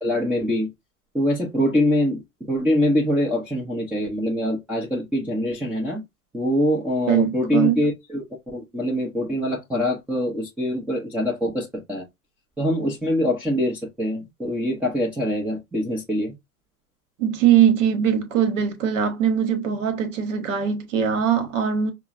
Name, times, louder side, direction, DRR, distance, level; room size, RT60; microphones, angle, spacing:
voice 1, 0.0-0.7 1.1-2.2 2.5-6.0 6.3-12.1 12.6-16.3, left 1 dB, 5° right, 0.6 m, -24 dB
voice 2, 7.1-7.8 17.2-21.9, right 8 dB, 55° right, 1.1 m, -21 dB
5.4 x 2.1 x 2.4 m
figure-of-eight pair, 95°, 44 cm